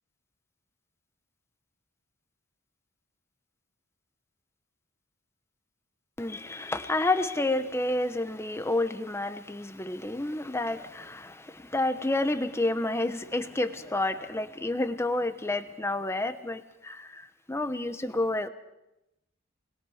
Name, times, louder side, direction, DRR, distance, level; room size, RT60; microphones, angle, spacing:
voice 1, 6.2-18.5, left 2 dB, 15° left, 1.0 m, -30 dB
28.0 x 21.0 x 5.0 m
head